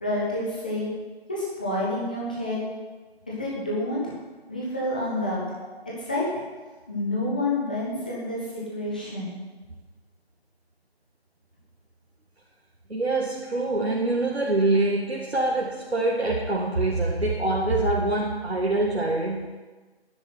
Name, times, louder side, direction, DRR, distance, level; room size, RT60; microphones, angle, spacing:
voice 1, 0.0-0.9 1.3-2.6 3.3-4.1 4.5-5.4 5.8-6.3 6.9-9.3, left 1 dB, 10° left, -6 dB, 1.2 m, -28 dB
voice 2, 12.9-19.5, right 2 dB, 80° right, -3 dB, 2.1 m, -25 dB
10.5 x 7.9 x 9.3 m, 1.3 s
figure-of-eight pair, 170°, 32 cm